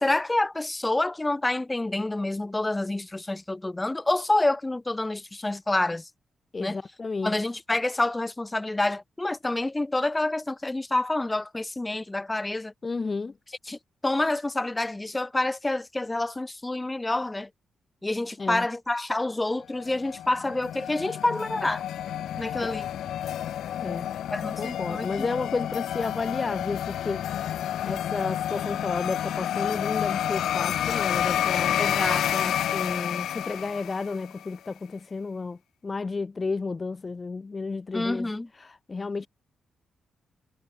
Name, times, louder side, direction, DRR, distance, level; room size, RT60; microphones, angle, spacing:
voice 1, 0.0-6.1 6.6-6.8 7.2-12.7 13.7-17.5 18.0-21.8 22.4-22.9 24.3-25.3 31.8-32.6 37.9-38.5, left 2 dB, 20° left, 1.2 m, -28 dB
voice 2, 6.5-7.4 12.8-13.3 18.4-18.7 23.8-24.1 24.6-27.3 27.8-31.9 32.4-38.3 38.6-39.3, left 4 dB, 40° left, 1.0 m, -32 dB
sound 1, 19.7-34.4, left 11 dB, 75° left, 1.5 m, -29 dB
hypercardioid pair, 45°, 0 cm